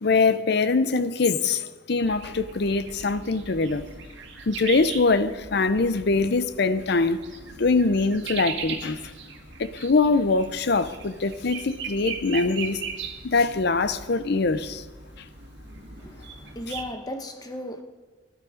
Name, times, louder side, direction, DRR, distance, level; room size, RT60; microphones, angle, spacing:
voice 1, 0.0-3.9 4.5-7.2 7.6-9.1 9.6-12.8 13.2-14.8, left 3 dB, 60° left, 0.7 m, -23 dB
sound 1, 2.0-16.9, right 6 dB, 70° right, 1.8 m, -39 dB
voice 2, 16.0-17.8, left 1 dB, 20° left, 1.1 m, -36 dB
17.0 x 11.0 x 5.0 m
head